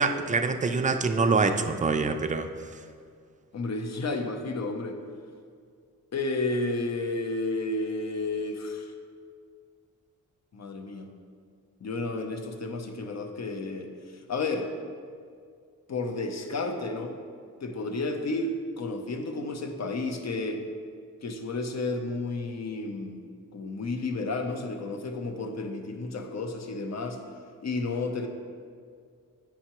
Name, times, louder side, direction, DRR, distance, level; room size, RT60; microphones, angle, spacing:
voice 1, 0.0-2.5, right 4 dB, 25° right, 7 dB, 0.4 m, -25 dB
voice 2, 3.5-5.0 6.1-8.9 10.5-11.1 11.8-14.7 15.9-17.2 17.6-20.6 21.2-23.2 23.5-27.2 27.6-28.3, left 2 dB, 50° left, 5 dB, 0.7 m, -32 dB
8.5 x 5.6 x 3.0 m, 2.2 s
cardioid pair, 85°, 33 cm